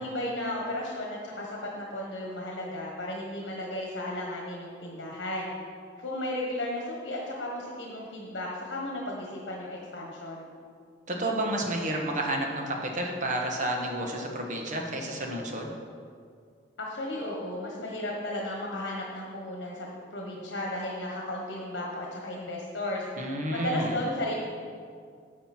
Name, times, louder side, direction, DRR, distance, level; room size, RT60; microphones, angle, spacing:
voice 1, 0.0-5.5 6.0-10.5 16.8-23.0 23.5-24.3, left 1 dB, 75° left, -2 dB, 1.4 m, -34 dB
voice 2, 11.1-15.7 23.2-23.9, right 1 dB, 45° right, 1 dB, 1.3 m, -30 dB
11.5 x 6.6 x 4.4 m, 2.2 s
head